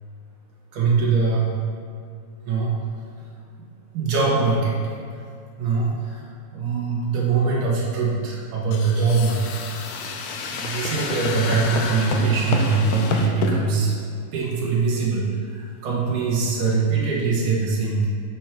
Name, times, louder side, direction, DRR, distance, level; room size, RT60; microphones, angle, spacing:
voice 1, 0.7-1.6 2.5-2.8 3.9-4.8 5.6-9.5 10.4-13.9 14.3-18.1, right 4 dB, 85° right, -5 dB, 2.5 m, -22 dB
sound 1, 8.7-13.5, left 4 dB, 85° left, 2.1 m, -28 dB
6.2 x 4.5 x 5.7 m, 2.4 s
omnidirectional pair, 3.4 m